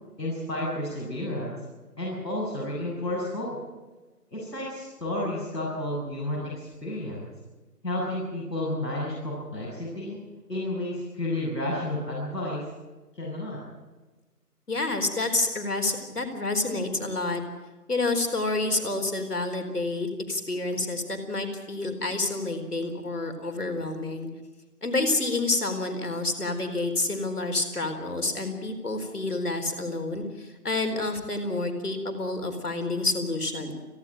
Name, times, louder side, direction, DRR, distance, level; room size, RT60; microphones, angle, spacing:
voice 1, 0.2-1.6 2.0-3.6 4.3-7.3 7.8-10.2 10.5-12.6 13.1-13.6, left 1 dB, 90° left, -5 dB, 8.0 m, -31 dB
voice 2, 14.7-17.4 17.9-24.3 24.8-33.7, left 2 dB, 70° left, 6 dB, 4.2 m, -28 dB
30.0 x 11.0 x 9.0 m, 1.2 s
figure-of-eight pair, 170°, 48 cm